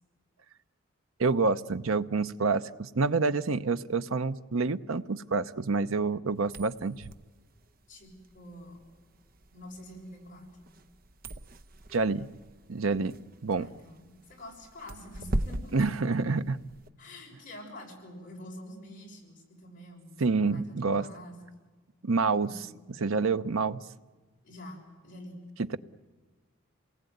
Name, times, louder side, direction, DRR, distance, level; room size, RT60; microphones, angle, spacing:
voice 1, 1.2-7.0 11.9-12.3 12.7-13.1 13.4-13.7 15.7-16.6 20.2-21.1 22.0-22.5 23.0-23.8, right 4 dB, 85° right, 12 dB, 0.8 m, -27 dB
sound 1, 6.4-16.9, right 1 dB, 45° right, 0.8 m, -40 dB
voice 2, 7.9-8.8 9.5-10.7 13.5-15.7 17.0-21.4 22.4-22.8 24.4-25.4, left 1 dB, 40° left, 0 dB, 6.2 m, -47 dB
28.5 x 19.5 x 9.4 m, 1.3 s
head